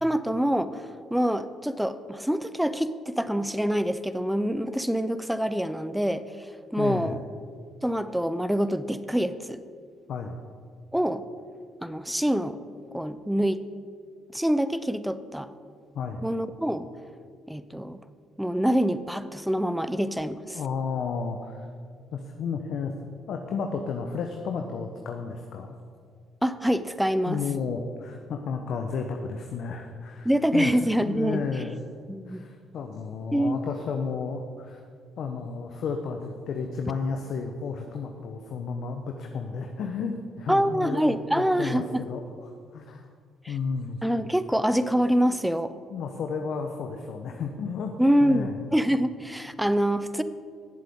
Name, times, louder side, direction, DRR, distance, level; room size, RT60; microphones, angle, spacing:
voice 1, 0.0-6.2 6.7-7.2 7.8-9.6 10.9-11.2 11.8-12.6 12.9-13.7 14.3-15.5 16.2-16.9 17.5-18.0 18.4-20.6 26.4-27.4 30.2-31.4 32.1-32.4 33.3-33.6 40.5-42.0 43.4-43.5 44.0-45.7 48.0-50.2, equal, 5° right, 13 dB, 0.6 m, -25 dB
voice 2, 6.8-7.2 10.1-10.4 15.9-16.2 20.5-21.7 22.1-22.9 23.3-25.7 27.3-30.8 31.0-31.8 32.3-34.8 35.2-43.1 43.5-44.0 45.9-47.9 48.2-48.6, left 5 dB, 65° left, 4 dB, 0.8 m, -32 dB
16.5 x 7.5 x 3.7 m, 2.1 s
hypercardioid pair, 55°, 0 cm